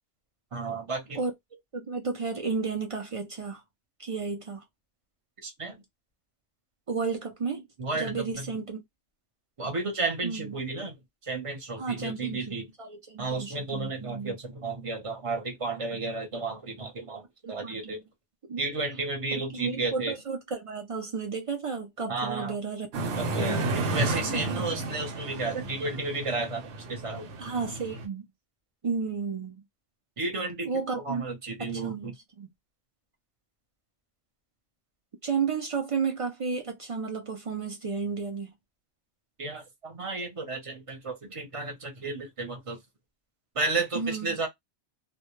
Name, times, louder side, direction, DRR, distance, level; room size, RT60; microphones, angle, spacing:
voice 1, 0.5-1.2 5.4-5.8 7.8-8.6 9.6-11.0 11.2-12.7 13.2-18.0 18.6-20.1 22.1-22.6 23.1-27.3 30.2-32.2 39.4-42.8 43.5-44.5, right 3 dB, 30° right, 0.7 m, -33 dB
voice 2, 1.2-3.6 4.0-4.6 6.9-7.7 7.9-8.8 10.2-10.6 11.8-12.5 12.8-14.4 15.9-16.0 17.4-18.0 18.5-18.6 19.3-22.9 23.3-23.7 23.9-24.0 24.5-24.6 27.4-28.3 28.8-29.6 30.6-31.3 31.6-32.5 35.2-38.5 43.9-44.4, right 5 dB, 55° right, 0.3 m, -33 dB
sound 1, 22.9-28.0, right 2 dB, 75° right, 1.0 m, -32 dB
2.2 x 2.1 x 3.0 m
omnidirectional pair, 1.2 m